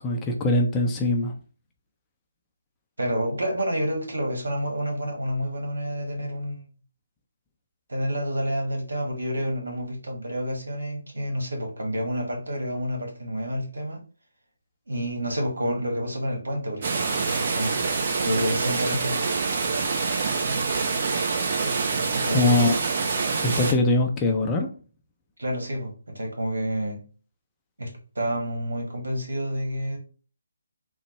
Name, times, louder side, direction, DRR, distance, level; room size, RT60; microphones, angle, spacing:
voice 1, 0.0-1.3 22.3-22.7 23.4-24.7, left 2 dB, 15° left, 0.4 m, -22 dB
voice 2, 3.0-6.7 7.9-14.0 14.9-17.7 18.2-19.3 22.2-22.7 25.4-27.0 27.8-27.9 28.1-30.0, equal, 70° right, 1.4 m, -29 dB
sound 1, 16.8-23.7, right 4 dB, 40° right, 0.7 m, -26 dB
3.8 x 2.2 x 3.2 m
figure-of-eight pair, 150°, 0 cm